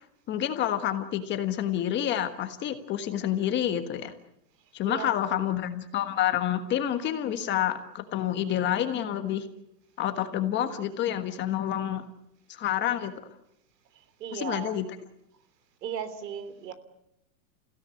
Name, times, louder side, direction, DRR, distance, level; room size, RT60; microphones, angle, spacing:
voice 1, 0.3-4.1 4.7-9.5 10.0-12.0 12.5-13.1 14.3-14.9, left 11 dB, 20° left, 8 dB, 1.4 m, -28 dB
voice 2, 4.8-5.5 14.2-14.7 15.8-16.7, right 8 dB, 75° right, 12 dB, 3.4 m, -36 dB
29.5 x 17.0 x 8.4 m, 0.81 s
supercardioid pair, 155°, 50 cm